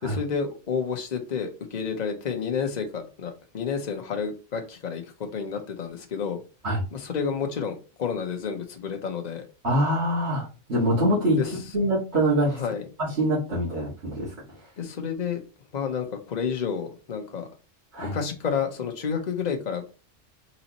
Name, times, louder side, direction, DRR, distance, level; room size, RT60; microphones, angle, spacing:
voice 1, 0.0-5.0 5.3-6.4 6.9-9.4 11.3-11.5 12.5-12.8 14.8-15.4 15.7-17.5 18.0-19.9, left 6 dB, 40° left, 4 dB, 0.9 m, -30 dB
voice 2, 9.6-11.4 11.7-12.6 13.0-14.3 17.9-18.2, right 1 dB, 55° right, -8 dB, 2.2 m, -24 dB
4.2 x 4.1 x 2.9 m, 0.34 s
omnidirectional pair, 1.3 m